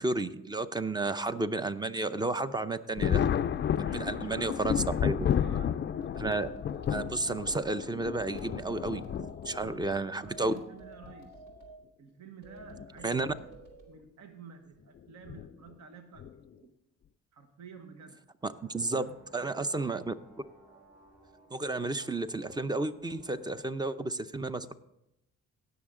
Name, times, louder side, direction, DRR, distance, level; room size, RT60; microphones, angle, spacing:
voice 1, 0.0-3.3 3.8-5.2 6.2-6.5 6.9-10.5 13.0-13.3 18.4-19.1 19.3-20.1 21.5-24.7, right 2 dB, 15° right, 12 dB, 0.6 m, -32 dB
Thunder, 3.0-10.0 11.0-11.1 12.6-12.9 13.2-13.3 15.3-15.5 16.2-16.5, left 9 dB, 40° left, 0.4 m, -32 dB
voice 2, 3.8-6.0 9.6-11.4 12.0-13.6 13.9-16.7 17.3-18.2 19.0-19.8, right 6 dB, 65° right, 6 dB, 1.1 m, -50 dB
sound 1, 5.9-7.4 8.1-9.6 10.2-11.8 12.4-13.9, right 2 dB, 80° right, 2.6 m, -51 dB
sound 2, 18.4-23.7, right 2 dB, 35° right, 3.9 m, -60 dB
17.0 x 6.4 x 3.7 m, 0.84 s
cardioid pair, 90°, 30 cm